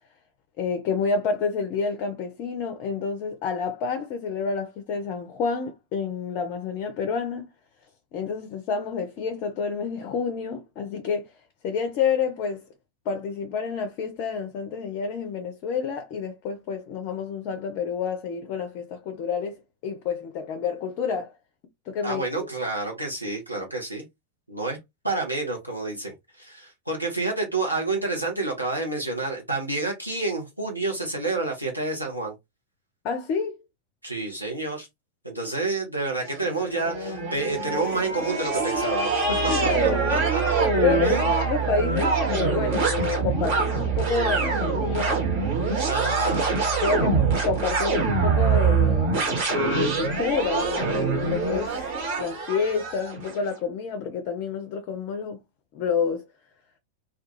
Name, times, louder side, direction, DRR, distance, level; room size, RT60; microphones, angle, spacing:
voice 1, 0.6-7.5 8.1-11.3 11.6-12.6 13.1-21.4 21.9-22.2 33.0-33.6 39.5-40.2 40.8-45.2 46.8-51.8 52.2-55.4 55.7-56.2, left 5 dB, 40° left, 0.4 m, -29 dB
voice 2, 22.0-24.0 24.5-24.8 25.0-32.3 34.0-34.9 35.2-39.4 39.6-39.7 40.1-40.7 41.0-41.2 45.8-46.5, right 3 dB, 90° right, 0.7 m, -29 dB
sound 1, 36.3-53.4, right 4 dB, 50° right, 1.1 m, -24 dB
2.3 x 2.3 x 2.9 m
figure-of-eight pair, 90°, 0 cm